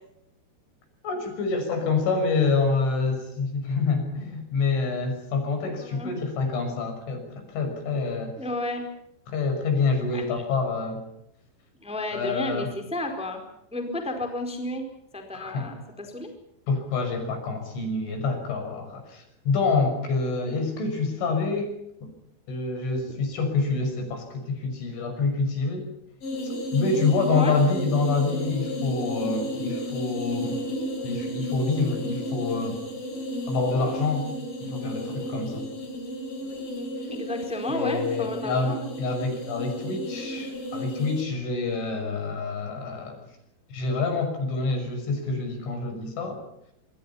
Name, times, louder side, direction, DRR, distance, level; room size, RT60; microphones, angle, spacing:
voice 1, 1.0-8.3 9.3-11.0 12.1-12.7 15.3-15.7 16.7-21.7 22.0-22.1 22.5-25.8 26.7-30.6 31.0-32.8 33.5-34.3 34.6-35.6 37.7-43.3 43.7-46.4, left 4 dB, 70° left, 6 dB, 8.4 m, -27 dB
voice 2, 5.8-6.1 8.4-8.8 10.1-10.4 11.8-13.4 13.7-14.8 15.1-16.3 27.3-27.5 37.1-38.9, left 1 dB, ahead, 4 dB, 3.7 m, -32 dB
sound 1, 26.2-41.2, equal, 45° left, 6.8 m, -33 dB
27.0 x 24.5 x 5.8 m, 0.79 s
omnidirectional pair, 5.6 m